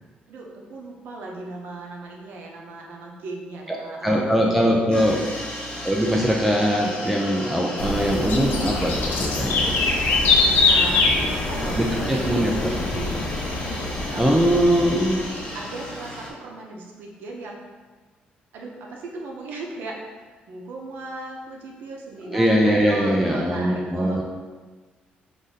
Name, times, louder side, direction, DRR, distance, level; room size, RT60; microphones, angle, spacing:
voice 1, 0.3-5.2 9.8-10.1 10.6-13.3 14.1-14.6 15.1-15.2 15.5-17.6 18.5-24.2, right 2 dB, 80° right, -1 dB, 0.8 m, -37 dB
voice 2, 4.0-5.2 5.8-9.8 11.8-12.7 14.2-15.3 22.2-24.2, equal, 5° right, -2 dB, 0.3 m, -21 dB
sound 1, 4.9-16.3, equal, 30° left, 0.7 m, -34 dB
sound 2, 7.8-15.4, left 3 dB, 80° left, 0.7 m, -23 dB
4.9 x 2.6 x 3.9 m, 1.4 s
cardioid pair, 180°, 3 cm